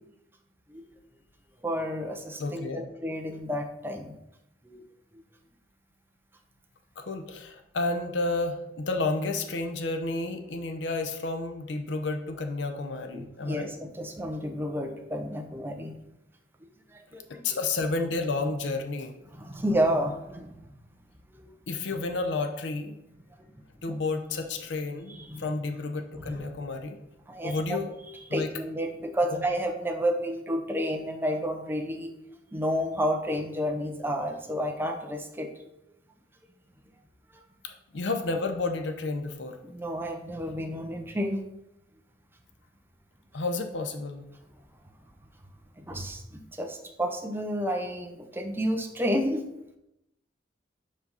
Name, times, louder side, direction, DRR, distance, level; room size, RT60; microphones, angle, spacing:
voice 1, 1.6-4.2 4.6-4.8 5.1-5.2 13.1-16.0 16.9-17.6 19.3-20.8 21.3-21.5 23.8-23.9 25.1-25.5 26.2-26.6 27.3-27.8 28.3-32.1 32.5-35.5 37.3-37.4 39.6-41.4 45.8-49.4, equal, 10° right, 4 dB, 0.6 m, -31 dB
voice 2, 2.4-2.8 7.0-13.7 17.4-19.1 21.7-23.0 23.8-27.0 27.4-27.9 28.3-28.5 29.3-29.4 37.6-39.6 43.3-44.3, left 3 dB, 75° left, 6 dB, 0.6 m, -31 dB
5.0 x 3.9 x 5.4 m, 0.88 s
head